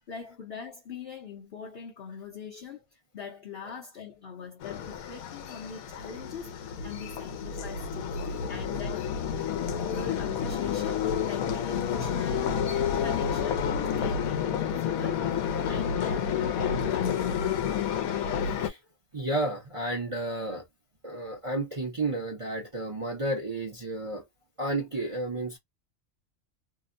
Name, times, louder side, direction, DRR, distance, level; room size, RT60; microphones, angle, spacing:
voice 1, 0.1-9.2 9.7-12.7 13.0-15.3 15.7-17.6, left 6 dB, 50° left, 0.8 m, -42 dB
sound 1, 4.6-18.7, left 7 dB, 90° left, 1.1 m, -30 dB
voice 2, 18.4-18.8 19.1-20.6 21.0-24.2 24.6-25.6, right 2 dB, 30° right, 0.7 m, -32 dB
2.8 x 2.1 x 2.5 m
omnidirectional pair, 1.4 m